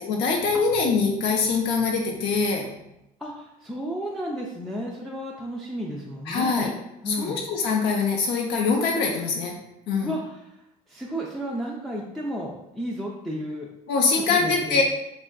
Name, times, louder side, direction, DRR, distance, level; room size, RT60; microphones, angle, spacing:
voice 1, 0.0-2.7 6.3-6.7 7.1-9.5 9.9-10.1 13.9-14.8, left 4 dB, 85° left, 0 dB, 0.4 m, -23 dB
voice 2, 3.2-6.7 7.0-7.4 10.0-10.6 10.9-13.7 14.1-14.8, equal, ahead, -3 dB, 0.3 m, -33 dB
3.5 x 2.4 x 2.2 m, 0.85 s
cardioid pair, 110°, 17 cm